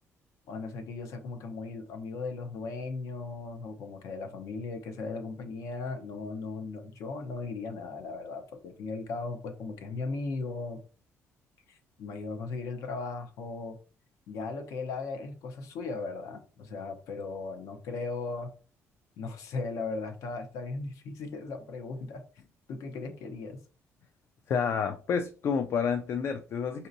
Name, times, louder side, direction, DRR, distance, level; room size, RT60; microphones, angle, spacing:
voice 1, 0.5-10.8 11.7-13.8 14.3-18.5 19.2-22.2 22.7-23.6, left 3 dB, 80° left, 0.8 m, -37 dB
voice 2, 24.5-26.9, left 6 dB, 50° left, 0.3 m, -29 dB
5.1 x 2.8 x 2.6 m
cardioid pair, 135°, 5 cm